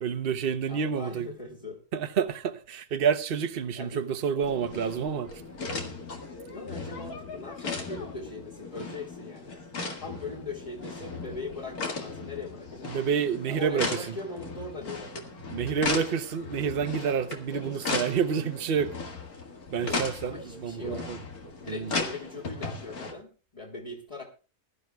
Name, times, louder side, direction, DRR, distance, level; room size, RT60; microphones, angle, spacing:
voice 1, 0.0-1.3 1.9-5.4 12.8-14.2 15.5-19.0 19.7-21.2 21.7-21.9, right 7 dB, 45° right, 1.0 m, -29 dB
voice 2, 0.7-1.8 3.8-4.0 6.4-9.6 10.0-12.9 13.5-15.1 20.2-21.0 21.5-24.2, left 2 dB, 25° left, 1.8 m, -40 dB
sound 1, 4.4-23.1, left 3 dB, 85° left, 2.3 m, -37 dB
22.0 x 12.0 x 2.3 m
omnidirectional pair, 1.5 m